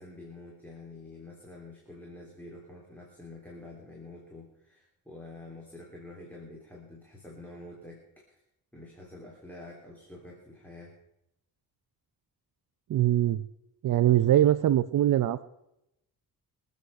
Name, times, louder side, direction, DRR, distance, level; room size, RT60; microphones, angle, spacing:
voice 1, 0.0-8.4 8.7-11.0, left 2 dB, 5° left, -3 dB, 3.3 m, -47 dB
voice 2, 12.9-13.5 13.8-15.4, right 12 dB, 55° right, 11 dB, 0.6 m, -22 dB
24.0 x 8.1 x 5.8 m, 0.86 s
cardioid pair, 130°, 37 cm